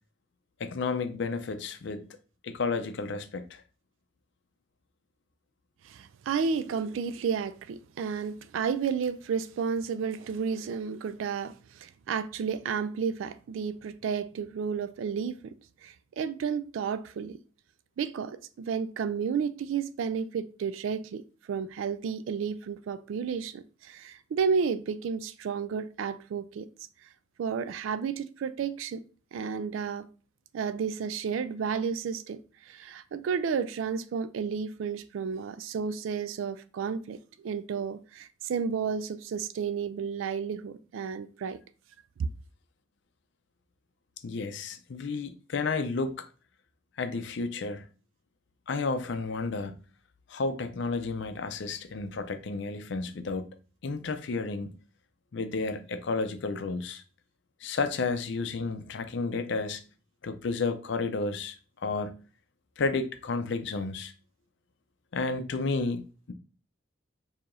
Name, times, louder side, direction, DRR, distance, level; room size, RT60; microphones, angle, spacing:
voice 1, 0.6-2.2 2.4-3.6 44.2-46.3 47.0-47.9 48.7-49.7 50.3-53.5 53.8-54.7 55.3-57.0 57.6-59.8 60.2-61.6 61.8-62.2 62.8-64.1 65.1-66.3, left 4 dB, 65° left, 0.5 m, -32 dB
voice 2, 5.8-15.5 15.8-17.4 18.0-21.2 21.5-26.7 27.4-29.0 29.3-30.1 30.5-41.6, right 6 dB, 85° right, 0.3 m, -32 dB
4.6 x 2.8 x 2.5 m
head